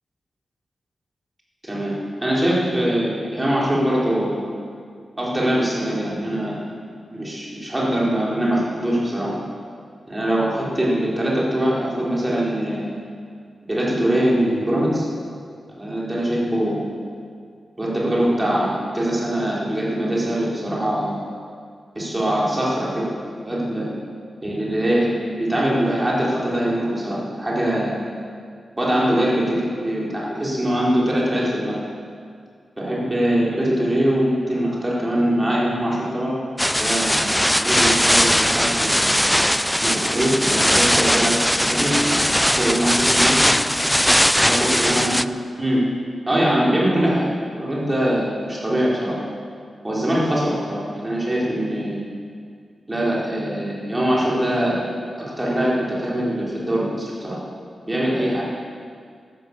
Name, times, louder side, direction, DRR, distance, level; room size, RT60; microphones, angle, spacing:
voice 1, 1.6-2.0 2.2-4.4 5.2-6.6 7.1-9.3 10.1-12.9 13.7-15.1 15.7-16.9 17.8-21.2 21.9-23.1 23.4-23.9 24.4-27.9 28.8-31.8 32.8-36.4 36.8-37.3 37.6-39.0 39.8-43.4 44.4-45.8 46.3-49.2 49.8-52.0 52.9-54.8 55.2-57.4 57.9-58.5, right 1 dB, 15° right, -6 dB, 4.2 m, -22 dB
sound 1, 36.6-45.2, equal, 5° left, 0.3 m, -19 dB
15.0 x 11.5 x 6.8 m, 2.2 s
wide cardioid pair, 115°, 0 cm